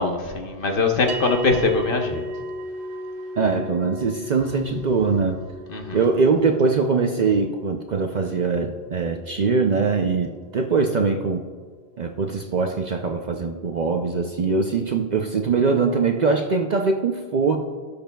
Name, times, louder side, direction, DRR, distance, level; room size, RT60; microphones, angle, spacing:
voice 1, 0.0-2.2 5.7-6.0, left 3 dB, 55° left, 3 dB, 1.0 m, -22 dB
sound 1, 1.1-11.6, right 1 dB, 70° right, 0.9 m, -37 dB
voice 2, 3.4-5.4 5.9-11.4 12.0-17.6, right 4 dB, 50° right, 3 dB, 0.5 m, -22 dB
17.0 x 6.8 x 2.3 m, 1.6 s
omnidirectional pair, 1.2 m